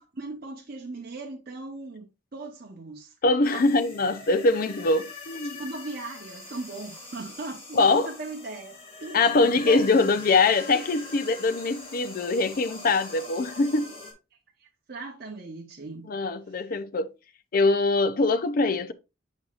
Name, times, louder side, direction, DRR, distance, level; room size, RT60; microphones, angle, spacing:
voice 1, 0.1-2.1 2.3-3.1 3.5-3.8 5.4-7.8 8.0-8.7 9.0-10.0 14.6-16.1, right 3 dB, 55° right, 0.9 m, -38 dB
voice 2, 3.2-5.6 7.7-8.1 9.1-13.9 16.1-17.1 17.5-18.9, left 3 dB, 50° left, 0.5 m, -23 dB
sound 1, 3.4-14.1, left 2 dB, 30° left, 2.3 m, -43 dB
7.3 x 6.3 x 2.4 m
head